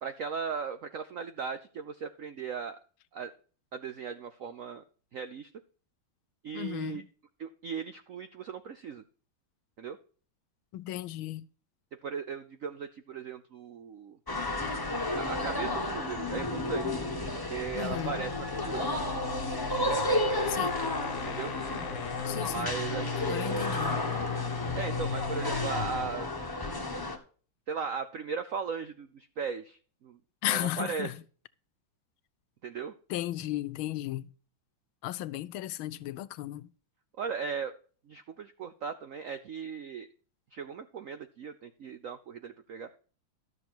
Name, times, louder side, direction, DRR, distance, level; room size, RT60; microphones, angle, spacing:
voice 1, 0.0-2.8 3.1-3.3 3.7-4.8 5.1-5.5 6.4-7.0 7.4-9.0 9.8-10.0 12.0-14.2 15.1-17.0 17.3-18.9 21.2-21.5 22.5-23.7 24.8-26.3 27.7-30.2 30.5-31.1 32.6-32.9 37.2-37.7 38.1-40.1 40.5-42.9, right 6 dB, 75° right, 0.7 m, -37 dB
voice 2, 6.5-7.0 10.7-11.5 17.7-18.2 20.5-20.7 22.3-22.7 23.2-24.1 30.4-31.1 33.1-34.3 35.0-36.7, left 14 dB, 90° left, 1.5 m, -35 dB
sound 1, 14.3-27.2, left 1 dB, 15° left, 1.0 m, -32 dB
sound 2, 17.7-26.2, left 7 dB, 70° left, 0.7 m, -37 dB
12.5 x 6.8 x 4.4 m
omnidirectional pair, 2.2 m